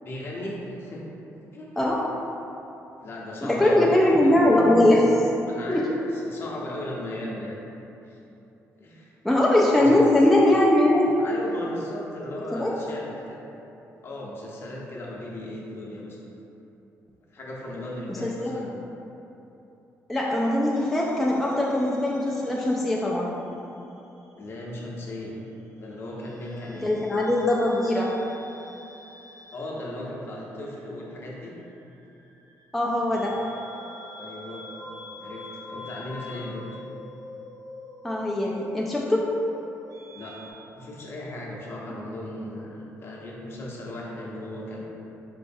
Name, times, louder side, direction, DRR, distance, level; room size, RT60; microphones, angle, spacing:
voice 1, 0.0-1.0 1.5-1.9 3.0-4.4 5.5-7.6 8.1-8.2 8.8-9.1 9.8-10.0 11.2-13.4 14.0-16.2 17.3-18.8 24.4-25.4 25.7-26.9 28.7-28.8 29.5-31.5 34.2-34.6 35.2-36.6 40.1-44.8, left 1 dB, 40° left, -4 dB, 0.7 m, -37 dB
voice 2, 3.4-5.1 5.7-5.8 9.2-11.2 12.5-12.7 18.1-18.5 20.1-23.3 26.8-28.1 32.7-33.3 38.0-39.2, left 1 dB, ahead, -5 dB, 0.3 m, -21 dB
sound 1, 20.7-23.6 23.8-25.0 26.2-40.5, left 1 dB, 70° right, 0.9 m, -45 dB
4.7 x 3.1 x 2.6 m, 3.0 s
cardioid pair, 130°, 6 cm